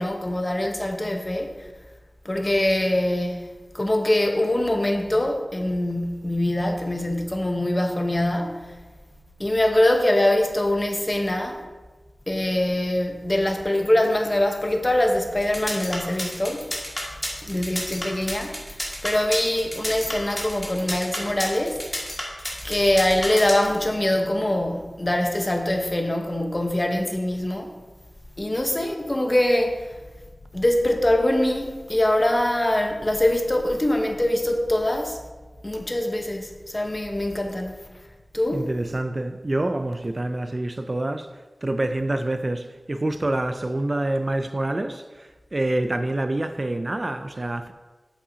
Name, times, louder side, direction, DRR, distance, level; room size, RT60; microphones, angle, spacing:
voice 1, 0.0-1.6 2.2-8.8 9.4-11.6 12.3-16.6 17.4-18.7 19.0-21.8 22.6-27.7 28.4-29.8 30.5-35.2 35.6-37.7 38.3-38.7, left 1 dB, 30° left, 0.9 m, -23 dB
sound 1, 15.4-23.8, equal, 15° left, 2.0 m, -30 dB
voice 2, 38.5-41.3 41.6-47.7, right 1 dB, 40° right, 0.4 m, -27 dB
8.4 x 7.3 x 2.8 m
wide cardioid pair, 65°, 0 cm